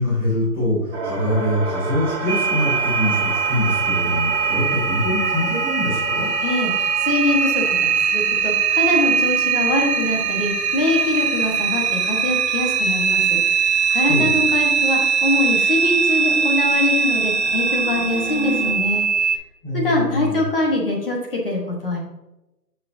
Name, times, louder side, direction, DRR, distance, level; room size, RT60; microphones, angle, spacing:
voice 1, 0.0-6.3 14.1-14.4 19.6-20.4, left 1 dB, 15° left, -12 dB, 2.7 m, -24 dB
sound 1, 0.9-18.7, right 3 dB, 40° right, 1.4 m, -29 dB
sound 2, 2.3-19.4, right 6 dB, 70° right, 0.8 m, -21 dB
voice 2, 6.4-19.3 19.7-22.0, left 2 dB, 35° left, -1 dB, 1.2 m, -23 dB
9.0 x 5.8 x 2.6 m, 0.95 s
hypercardioid pair, 165°, 49 cm